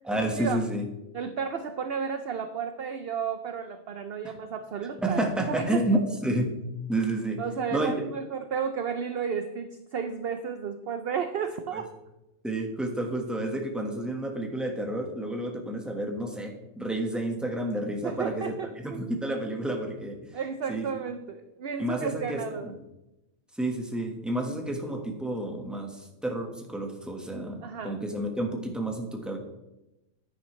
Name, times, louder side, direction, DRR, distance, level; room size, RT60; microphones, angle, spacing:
voice 1, 0.1-0.8 4.2-4.3 5.0-6.6 6.9-7.4 7.7-7.9 11.7-11.8 12.4-18.5 18.8-20.3 20.7-20.9 21.8-22.7 23.6-29.4, right 1 dB, ahead, 2 dB, 1.3 m, -30 dB
voice 2, 1.1-5.8 7.4-11.9 18.0-19.3 20.3-22.7 27.6-28.0, right 6 dB, 60° right, 8 dB, 0.6 m, -33 dB
10.0 x 10.0 x 3.2 m, 0.94 s
omnidirectional pair, 1.5 m